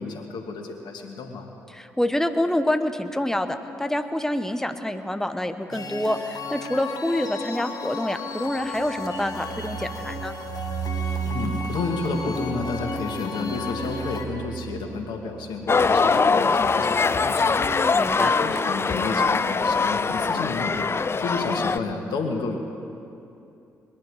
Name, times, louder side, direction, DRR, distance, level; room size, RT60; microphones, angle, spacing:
voice 1, 0.0-1.5 11.2-17.8 18.1-20.9 21.2-22.6, left 3 dB, 70° left, 3 dB, 1.9 m, -31 dB
voice 2, 1.7-10.4 17.9-18.3, left 1 dB, 5° left, 8 dB, 1.0 m, -27 dB
sound 1, 5.7-14.3, left 3 dB, 55° left, 1.7 m, -34 dB
sound 2, 8.5-18.2 18.5-18.6 18.9-19.3, right 10 dB, 70° right, 0.5 m, -37 dB
sound 3, 15.7-21.8, left 4 dB, 30° left, 0.5 m, -22 dB
21.5 x 10.5 x 5.0 m, 2.7 s
hypercardioid pair, 45°, 8 cm